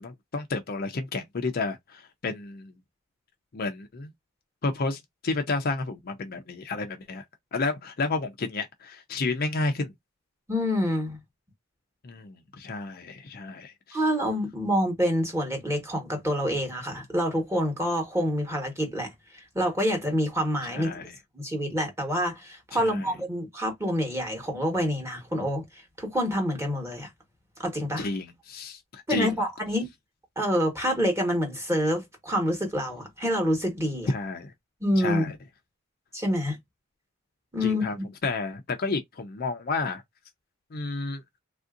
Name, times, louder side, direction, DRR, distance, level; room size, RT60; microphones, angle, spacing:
voice 1, 0.0-2.7 3.5-4.1 4.6-7.2 7.5-9.9 12.0-14.0 20.7-21.1 22.8-23.1 28.0-29.3 34.1-34.5 35.0-35.3 37.6-38.0 38.2-40.0 40.7-41.2, left 3 dB, 45° left, 0.4 m, -31 dB
voice 2, 10.5-11.2 13.9-20.9 21.3-25.6 26.0-27.1 27.6-28.1 29.1-29.9 30.4-34.1 34.8-35.3 36.1-36.6 37.5-38.1, equal, 10° right, 1.2 m, -27 dB
3.3 x 2.6 x 2.5 m
head